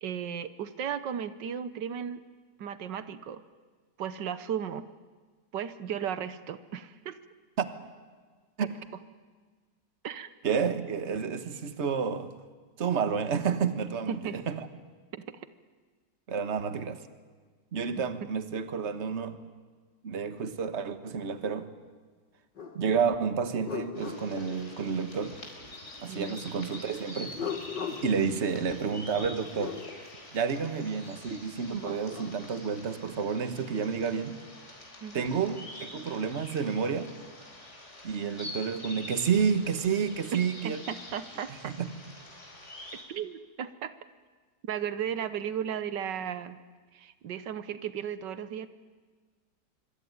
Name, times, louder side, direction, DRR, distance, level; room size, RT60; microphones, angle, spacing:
voice 1, 0.0-2.2 2.6-3.4 4.0-4.9 5.5-7.2 10.0-10.3 14.1-14.4 15.1-15.5 26.1-26.4 35.0-35.3 40.6-41.8 43.1-43.9 44.6-46.6 46.9-48.7, right 8 dB, 85° right, 12 dB, 1.6 m, -35 dB
voice 2, 10.4-12.3 12.8-14.7 16.3-17.0 17.7-19.4 20.0-21.7 22.7-25.4 26.0-27.3 27.9-29.8 30.3-34.4 35.1-37.1 38.0-40.8 41.6-41.9, right 6 dB, 40° right, 10 dB, 1.6 m, -30 dB
sound 1, 22.6-22.8 23.2-25.2 27.1-29.8 31.5-32.4, left 6 dB, 80° left, 2.9 m, -40 dB
sound 2, 23.9-43.0, left 1 dB, 40° left, 5.0 m, -46 dB
25.5 x 24.5 x 9.5 m, 1.5 s
omnidirectional pair, 1.9 m